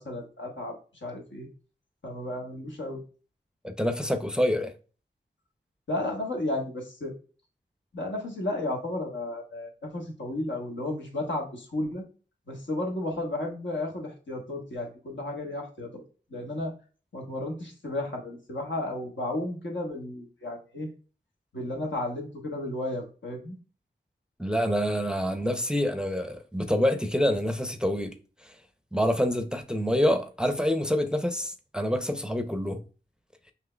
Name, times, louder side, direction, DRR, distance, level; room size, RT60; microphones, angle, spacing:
voice 1, 0.0-1.5 2.0-3.0 5.9-7.1 7.9-12.0 12.5-16.0 16.3-16.7 17.1-20.9 21.5-23.6, left 1 dB, 75° left, 1.2 m, -33 dB
voice 2, 3.6-4.7 24.4-28.2 28.4-28.5 28.9-32.8, equal, 5° right, 0.5 m, -26 dB
6.1 x 2.8 x 2.2 m
wide cardioid pair, 50°, 19 cm